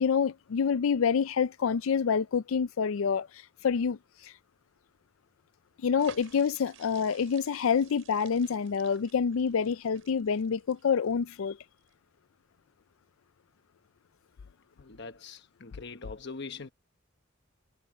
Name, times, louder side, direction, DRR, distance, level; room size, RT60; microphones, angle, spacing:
voice 1, 0.0-4.3 5.8-11.6, left 6 dB, 75° left, 0.4 m, -27 dB
sound 1, 6.0-11.4 11.8-11.9, right 7 dB, 75° right, 5.3 m, -54 dB
voice 2, 14.8-16.7, left 4 dB, 55° left, 1.1 m, -42 dB
head